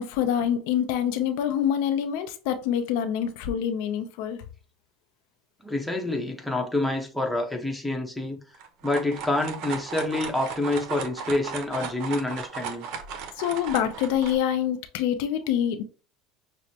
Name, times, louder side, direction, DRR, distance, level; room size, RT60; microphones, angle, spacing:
voice 1, 0.0-4.4 13.4-15.8, left 9 dB, 75° left, 0.5 m, -26 dB
voice 2, 5.6-8.4 8.8-12.9, left 2 dB, 5° left, 1.0 m, -27 dB
sound 1, 8.5-14.4, right 6 dB, 65° right, 0.7 m, -36 dB
6.1 x 2.1 x 2.8 m
supercardioid pair, 105°, 0 cm